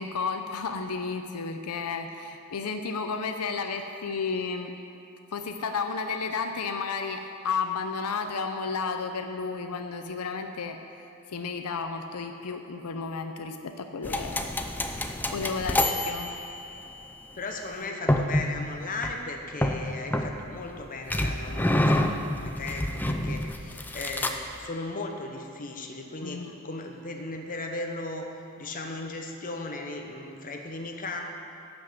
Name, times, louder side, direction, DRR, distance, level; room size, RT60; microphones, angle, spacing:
voice 1, 0.0-4.7 5.3-16.3 26.2-26.6, left 5 dB, 85° left, 6 dB, 0.6 m, -33 dB
sound 1, 14.0-17.0 18.1-18.6 19.0-19.2 19.6-20.7 21.1-24.6, left 1 dB, 10° left, 0.4 m, -28 dB
voice 2, 17.3-28.3 28.6-31.2, left 2 dB, 40° left, 3 dB, 0.9 m, -37 dB
12.0 x 5.4 x 7.6 m, 2.6 s
head